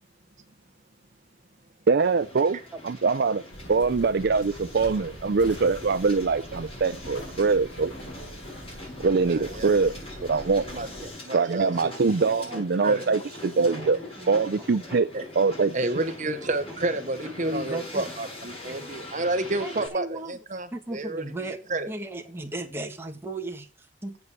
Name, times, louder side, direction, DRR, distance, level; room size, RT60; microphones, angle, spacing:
voice 1, 1.9-3.4 3.7-7.9 9.0-9.9 10.2-10.7 11.3-14.0 14.3-15.1 15.4-15.7, right 4 dB, 55° right, 0.5 m, -23 dB
Hiss, 2.0-19.9, left 2 dB, 30° left, 5.6 m, -42 dB
sound 1, 3.5-11.1, right 1 dB, 60° left, 6.1 m, -43 dB
voice 2, 9.3-9.7 10.7-11.9 12.5-13.0 15.1-15.2 15.7-21.2 21.7-21.9, right 2 dB, 40° right, 1.0 m, -30 dB
voice 3, 12.6-13.2 13.6-14.4 14.9-15.0 17.2-18.1 18.7-18.9 19.6-20.4 20.7-21.6 21.9-24.2, right 2 dB, 10° right, 1.8 m, -36 dB
8.2 x 8.1 x 6.7 m
head